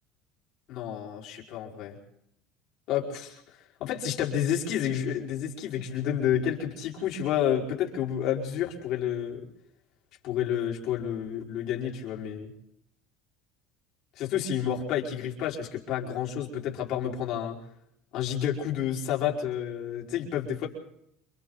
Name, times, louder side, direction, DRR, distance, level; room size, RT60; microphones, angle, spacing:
voice 1, 0.7-2.0 2.9-9.4 10.2-12.5 14.2-17.6 18.1-20.7, left 9 dB, 60° left, -1 dB, 5.1 m, -30 dB
28.5 x 23.5 x 4.0 m, 0.73 s
supercardioid pair, 110°, 0 cm